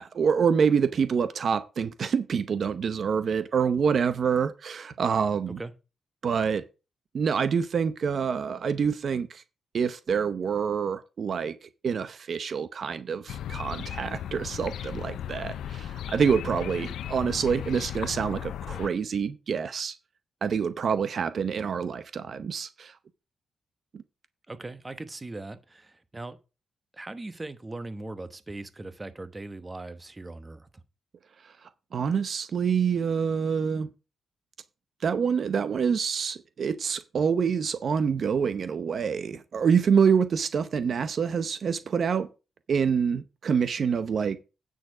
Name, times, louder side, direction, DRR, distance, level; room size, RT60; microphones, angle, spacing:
voice 1, 0.0-5.6 6.2-6.6 7.1-9.4 9.7-20.0 20.4-22.9 23.9-24.0 31.4-31.5 31.9-33.9 35.0-42.3 42.7-44.4, right 6 dB, 60° right, 0.7 m, -26 dB
sound 1, 13.3-18.9, left 10 dB, 90° left, 0.5 m, -36 dB
voice 2, 24.5-26.4 26.9-30.7, right 2 dB, 20° right, 1.0 m, -39 dB
9.3 x 6.5 x 4.9 m
cardioid pair, 90°, 0 cm